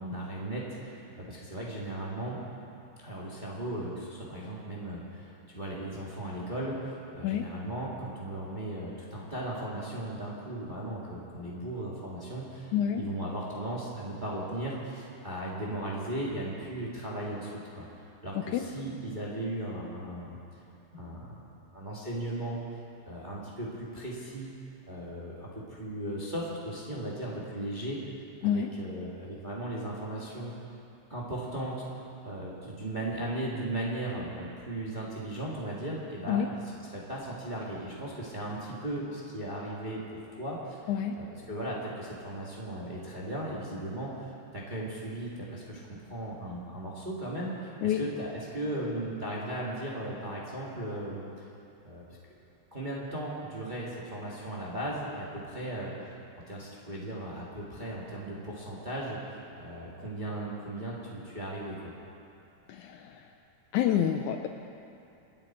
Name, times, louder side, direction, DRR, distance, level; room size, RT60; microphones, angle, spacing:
voice 1, 0.0-2.4 3.0-17.9 18.2-20.4 20.9-21.5 21.7-22.6 23.0-24.5 24.9-28.0 28.4-30.5 31.1-31.8 32.2-36.6 36.9-40.9 41.2-51.2 51.8-52.0 52.7-56.2 56.5-59.2 59.6-61.9, right 1 dB, 20° right, -5 dB, 1.5 m, -37 dB
voice 2, 12.7-13.0 18.5-18.6 28.4-28.7 36.3-36.5 40.9-41.2 47.8-48.0 62.7-63.3 63.7-64.5, left 9 dB, 75° left, 5 dB, 1.9 m, -28 dB
28.0 x 10.5 x 4.4 m, 2.7 s
omnidirectional pair, 3.8 m